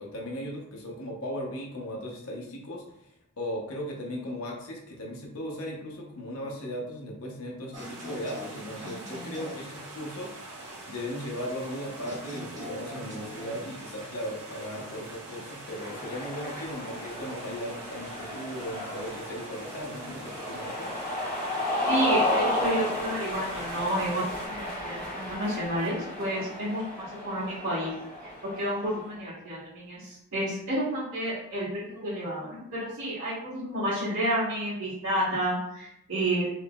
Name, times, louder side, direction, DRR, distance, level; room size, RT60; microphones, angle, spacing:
voice 1, 0.0-10.3 10.9-20.9, equal, 70° left, -1 dB, 0.8 m, -37 dB
sound 1, 7.7-9.7 12.0-13.6, left 1 dB, 35° right, 1.2 m, -43 dB
sound 2, 7.7-24.5, right 2 dB, 85° right, 1.2 m, -44 dB
Cheering, 15.7-29.1, left 1 dB, 15° right, 1.3 m, -33 dB
voice 2, 21.9-27.9 28.4-36.5, right 1 dB, 65° right, -12 dB, 1.4 m, -30 dB
3.6 x 3.2 x 2.3 m, 0.79 s
head